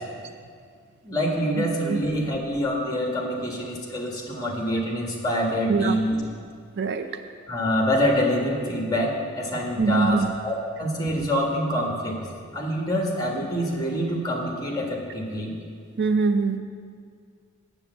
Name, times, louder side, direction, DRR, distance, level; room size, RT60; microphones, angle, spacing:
voice 1, 1.0-6.2 7.5-12.2 12.5-15.5, equal, 20° left, 0 dB, 1.6 m, -26 dB
voice 2, 1.6-2.0 5.7-6.0 6.8-7.2 9.8-10.3 16.0-16.6, right 4 dB, 50° right, 8 dB, 0.5 m, -23 dB
8.5 x 8.1 x 7.0 m, 2.1 s
head